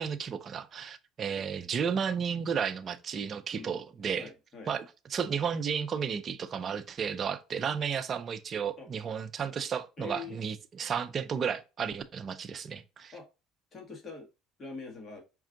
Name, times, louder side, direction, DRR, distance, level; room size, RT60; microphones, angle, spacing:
voice 1, 0.0-4.3 4.7-4.8 5.1-13.1, right 7 dB, 40° right, 0.5 m, -33 dB
voice 2, 4.1-4.7 8.8-8.9 10.0-10.4 13.1-13.3 13.7-14.3 14.6-15.2, left 4 dB, 35° left, 1.4 m, -43 dB
5.2 x 2.4 x 3.8 m
supercardioid pair, 100°, 0 cm